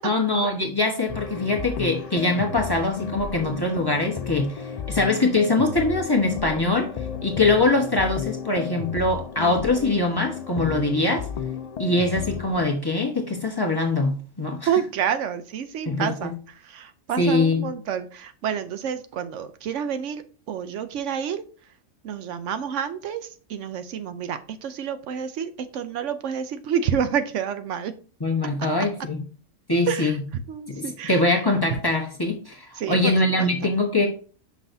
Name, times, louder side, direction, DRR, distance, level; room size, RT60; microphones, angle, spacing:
voice 1, 0.0-6.9 7.2-11.3 11.8-14.7 15.8-16.3 17.2-17.7 28.2-29.2 29.7-30.2 30.7-34.1, left 2 dB, 20° left, 1.1 m, -23 dB
sound 1, 1.1-12.6, left 7 dB, 85° left, 0.3 m, -33 dB
voice 2, 14.7-16.3 16.7-20.2 20.5-21.4 22.0-27.9 29.9-30.1 30.5-31.2 32.8-33.1, right 8 dB, 75° right, 0.9 m, -28 dB
6.2 x 5.8 x 2.6 m
omnidirectional pair, 1.3 m